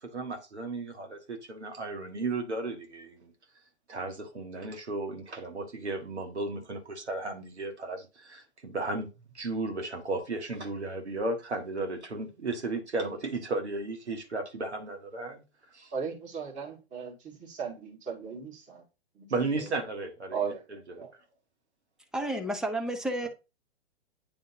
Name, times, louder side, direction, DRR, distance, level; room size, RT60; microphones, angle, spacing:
voice 1, 0.0-3.3 3.9-9.1 9.3-15.4 15.7-15.9 19.3-20.4 21.0-21.1, right 3 dB, 85° right, 1.7 m, -34 dB
voice 2, 15.9-18.8 19.1-19.3 19.6-19.7 20.3-20.7 21.0-21.1 22.2-22.3, right 6 dB, 20° right, 2.0 m, -37 dB
voice 3, 22.1-23.3, right 1 dB, ahead, 0.5 m, -31 dB
9.5 x 3.6 x 2.8 m
figure-of-eight pair, 115°, 33 cm